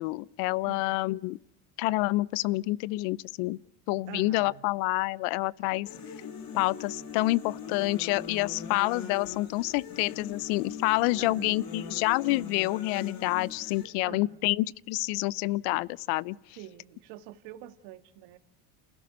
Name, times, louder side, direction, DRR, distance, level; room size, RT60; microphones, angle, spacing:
voice 1, 0.0-1.4 1.8-3.6 3.9-5.9 6.5-16.4, left 20 dB, 70° left, 0.8 m, -28 dB
voice 2, 0.6-1.0 4.1-4.6 11.2-11.7 14.0-14.5 16.6-18.4, right 12 dB, 65° right, 2.0 m, -45 dB
sound 1, 5.9-13.9, left 6 dB, 45° left, 3.7 m, -41 dB
28.5 x 16.5 x 8.0 m
supercardioid pair, 100°, 49 cm